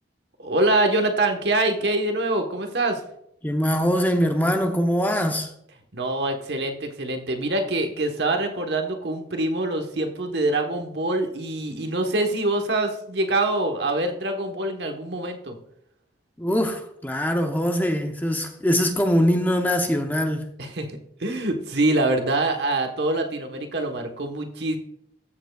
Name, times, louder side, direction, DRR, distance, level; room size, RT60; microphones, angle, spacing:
voice 1, 0.4-3.0 5.9-15.6 20.6-24.8, right 2 dB, 70° right, 1.2 m, -25 dB
voice 2, 3.4-5.5 16.4-20.4, equal, 10° left, 0.6 m, -22 dB
14.5 x 6.7 x 2.3 m
head